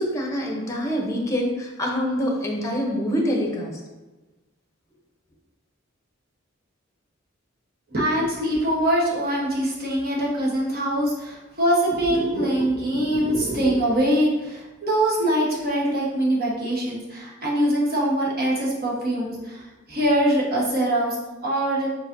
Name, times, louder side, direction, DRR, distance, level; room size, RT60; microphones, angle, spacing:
voice 1, 0.0-3.8, equal, 15° left, 0 dB, 0.8 m, -25 dB
voice 2, 7.9-21.9, right 1 dB, 50° right, -4 dB, 1.2 m, -23 dB
4.8 x 4.1 x 2.7 m, 1.1 s
head